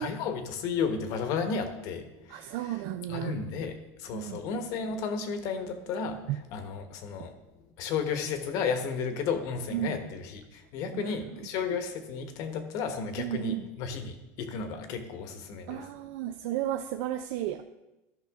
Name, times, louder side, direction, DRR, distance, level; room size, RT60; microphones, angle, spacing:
voice 1, 0.0-2.8 3.1-7.3 7.8-15.9, left 5 dB, 50° left, 8 dB, 1.1 m, -33 dB
voice 2, 2.3-3.4 4.1-4.5 6.3-6.4 9.7-10.0 10.9-11.2 11.7-11.8 13.2-13.7 15.7-17.6, right 13 dB, 60° right, 7 dB, 0.4 m, -33 dB
14.0 x 5.7 x 3.6 m, 0.99 s
cardioid pair, 165°, 8 cm